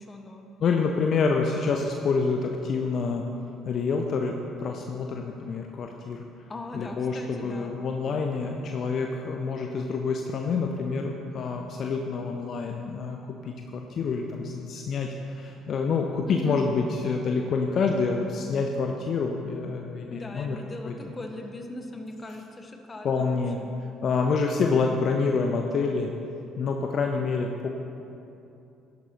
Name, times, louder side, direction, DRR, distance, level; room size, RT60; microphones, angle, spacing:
voice 1, 0.0-0.4 6.5-7.7 16.3-16.6 20.1-23.7, left 1 dB, 25° left, 3 dB, 1.3 m, -39 dB
voice 2, 0.6-3.3 3.7-6.2 6.7-20.6 20.8-20.9 23.0-23.6 24.0-26.1 26.6-27.7, left 4 dB, 50° left, 2 dB, 0.7 m, -27 dB
13.5 x 11.0 x 2.9 m, 2.8 s
figure-of-eight pair, 50°, 0 cm